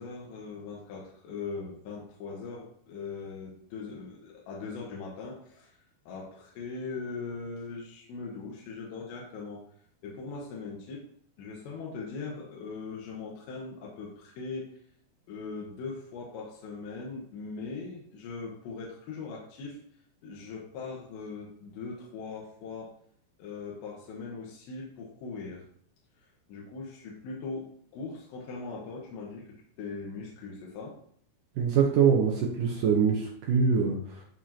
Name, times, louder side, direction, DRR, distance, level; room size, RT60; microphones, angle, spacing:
voice 1, 0.0-5.7 6.1-9.6 10.0-11.0 11.4-14.8 15.3-19.8 20.2-22.9 23.4-25.6 26.5-29.5 29.8-31.0, left 4 dB, 85° left, -3 dB, 3.6 m, -40 dB
voice 2, 31.6-34.2, right 6 dB, 70° right, 0 dB, 2.1 m, -24 dB
13.5 x 4.8 x 2.9 m, 0.63 s
omnidirectional pair, 4.9 m